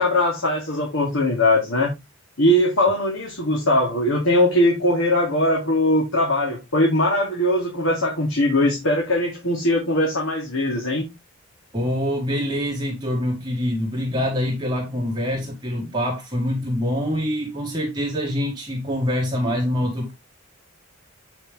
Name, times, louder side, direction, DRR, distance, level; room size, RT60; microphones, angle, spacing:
voice 1, 0.0-1.9 2.4-11.1, left 1 dB, 70° left, 2.7 m, -20 dB
voice 2, 11.7-20.1, equal, 20° right, 1.8 m, -25 dB
8.2 x 5.5 x 3.5 m
head